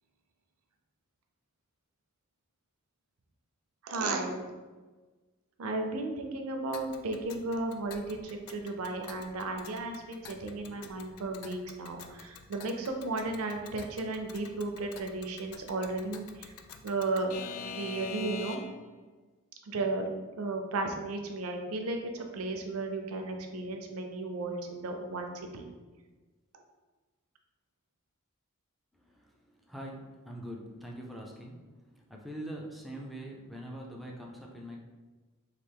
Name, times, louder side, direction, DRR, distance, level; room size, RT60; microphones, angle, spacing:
voice 1, 3.8-4.4 5.6-16.5 16.8-18.6 19.7-20.1 20.4-25.7, right 2 dB, 75° right, 4 dB, 0.5 m, -34 dB
Alarm / Clock, 6.7-18.9, left 6 dB, 85° left, 0.3 m, -47 dB
voice 2, 28.9-34.8, right 1 dB, ahead, -1 dB, 0.4 m, -43 dB
3.2 x 2.4 x 3.4 m, 1.3 s
head